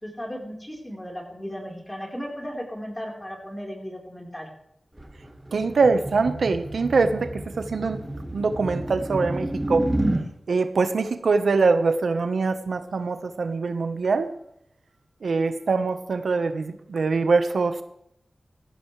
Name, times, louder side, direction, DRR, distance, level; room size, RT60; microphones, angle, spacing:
voice 1, 0.0-4.5, equal, 15° left, 0 dB, 4.2 m, -36 dB
sound 1, 5.0-10.3, right 1 dB, 10° right, 2.1 m, -30 dB
voice 2, 5.5-7.3 7.6-8.0 8.3-9.9 10.5-14.3 15.2-17.8, right 4 dB, 85° right, 9 dB, 1.1 m, -23 dB
18.5 x 15.0 x 3.3 m, 0.75 s
wide cardioid pair, 100°, 0 cm